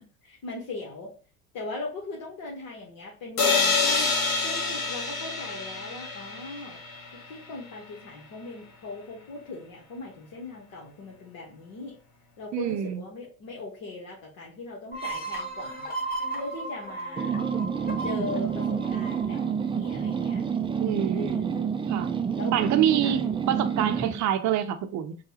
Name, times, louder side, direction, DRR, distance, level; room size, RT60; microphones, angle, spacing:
voice 1, 0.2-1.1 1.5-4.1 4.4-6.8 7.1-12.0 12.4-15.9 16.3-17.4 18.0-20.4 21.1-21.8 22.3-22.6 23.0-23.1, left 3 dB, 55° left, 1.4 m, -39 dB
sound 1, 3.4-7.2, left 4 dB, 70° left, 1.3 m, -27 dB
voice 2, 12.5-13.0 20.8-21.5 21.9-22.1 22.5-25.2, right 10 dB, 45° right, 0.7 m, -26 dB
sound 2, 14.9-20.4, right 2 dB, 20° left, 1.2 m, -35 dB
sound 3, 17.2-24.2, right 7 dB, 15° right, 0.4 m, -28 dB
6.5 x 2.4 x 2.9 m
figure-of-eight pair, 65°, 42 cm